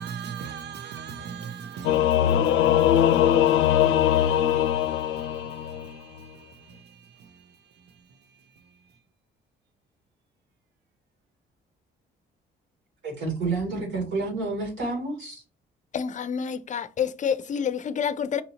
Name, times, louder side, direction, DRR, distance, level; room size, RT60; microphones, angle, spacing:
voice 1, 0.0-3.4 3.8-6.5, right 7 dB, 60° right, 0.6 m, -40 dB
Singing / Musical instrument, 1.8-5.9, left 11 dB, 90° left, 0.5 m, -21 dB
voice 2, 13.0-15.4, right 3 dB, 80° right, 2.2 m, -29 dB
voice 3, 15.9-18.4, left 7 dB, 40° left, 0.5 m, -28 dB
5.5 x 2.7 x 2.8 m
cardioid pair, 90°, 20 cm